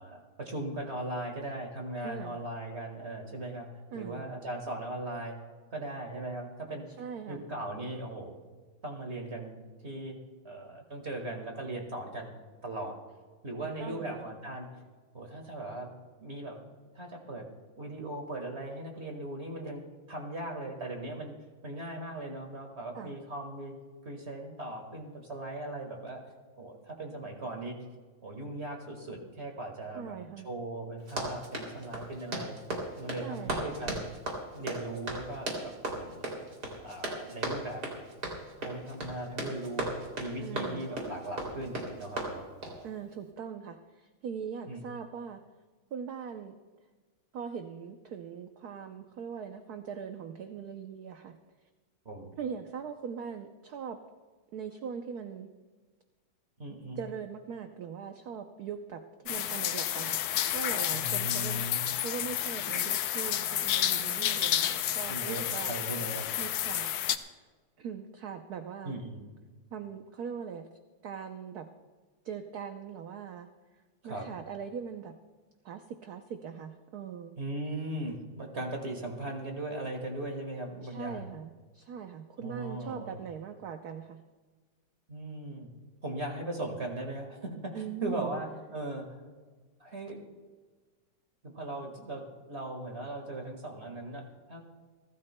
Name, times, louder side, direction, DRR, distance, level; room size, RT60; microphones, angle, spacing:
voice 1, 0.0-3.7 3.9-5.4 5.7-6.9 7.3-8.4 8.8-10.2 10.4-12.4 12.6-13.0 13.4-14.7 15.1-15.9 16.2-17.5 17.8-21.3 21.6-23.8 24.0-26.3 26.6-27.8 28.2-32.6 33.0-34.0 34.5-36.4 36.8-37.8 38.6-39.9 40.2-42.5 44.7-44.8 52.0-52.3 56.6-57.0 60.9-61.8 65.1-66.3 68.8-69.2 74.0-74.3 77.4-81.3 82.4-83.2 85.1-85.7 86.0-89.2 89.8-90.2 91.4-94.6, right 1 dB, 35° right, 3 dB, 1.8 m, -38 dB
voice 2, 2.0-2.4 3.9-4.2 7.0-7.5 13.8-14.3 22.9-23.1 29.9-30.5 33.2-33.7 40.4-40.9 42.8-45.4 45.9-46.5 47.3-51.4 52.4-54.0 54.5-55.5 57.0-61.6 62.0-65.8 66.4-66.9 67.8-69.0 69.7-70.7 71.0-71.7 72.2-73.5 74.0-75.2 75.6-77.4 80.8-84.2 87.7-88.3, right 7 dB, 65° right, 6 dB, 0.9 m, -41 dB
Run, 31.0-42.8, right 2 dB, 50° right, 3.4 m, -37 dB
sound 1, 59.3-67.2, left 11 dB, 80° left, 1.5 m, -30 dB
29.0 x 13.0 x 2.2 m, 1.4 s
omnidirectional pair, 2.3 m